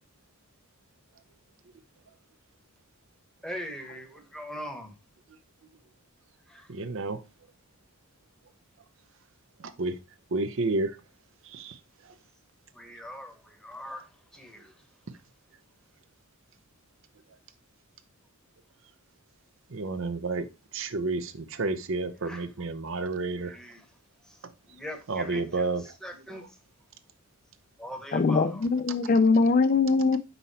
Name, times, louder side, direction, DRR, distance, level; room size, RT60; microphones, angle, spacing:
voice 1, 3.4-4.9 6.5-6.7 12.7-14.1 14.3-14.7 22.3-22.4 23.4-23.8 24.3-24.4 24.7-25.7 26.0-26.4 27.8-28.6, equal, 5° left, 1.0 m, -41 dB
voice 2, 6.7-7.2 9.6-10.0 10.3-11.0 11.4-12.1 19.7-20.5 20.7-23.6 25.1-25.9 26.3-26.5, right 3 dB, 60° right, 0.6 m, -31 dB
voice 3, 28.1-30.2, left 4 dB, 40° left, 0.4 m, -22 dB
5.5 x 4.3 x 4.1 m
head